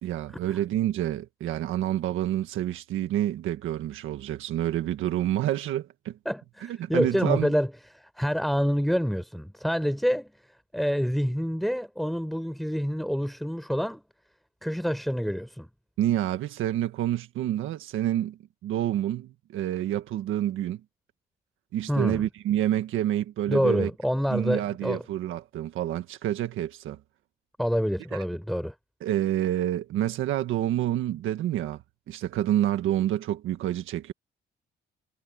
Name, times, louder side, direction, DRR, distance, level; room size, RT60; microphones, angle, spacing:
voice 1, 0.0-6.2 6.6-7.5 16.0-20.8 21.7-23.9 24.3-27.0 28.1-28.2 29.0-34.1, right 12 dB, 85° right, 1.7 m, -28 dB
voice 2, 6.2-7.7 7.9-10.3 10.7-14.0 14.6-15.7 21.9-22.3 23.5-25.0 27.6-28.7, equal, ahead, 4.9 m, -27 dB
cardioid pair, 90°, 20 cm